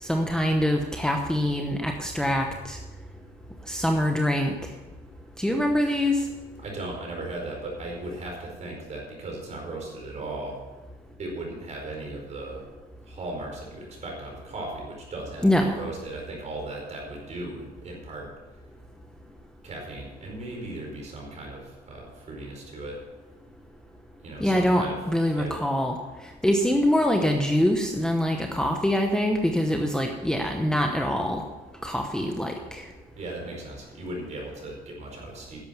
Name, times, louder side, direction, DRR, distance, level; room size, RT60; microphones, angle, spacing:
voice 1, 0.0-2.8 3.7-4.5 5.4-6.3 15.4-15.8 24.4-26.0 26.4-31.4 31.8-32.9, equal, 5° left, 3 dB, 1.0 m, -24 dB
voice 2, 6.6-10.6 11.2-12.7 13.0-18.3 19.6-23.0 24.2-25.0 25.3-25.6 33.1-35.6, right 2 dB, 40° right, 0 dB, 4.7 m, -37 dB
10.5 x 7.5 x 7.0 m, 1.2 s
cardioid pair, 110°, 17 cm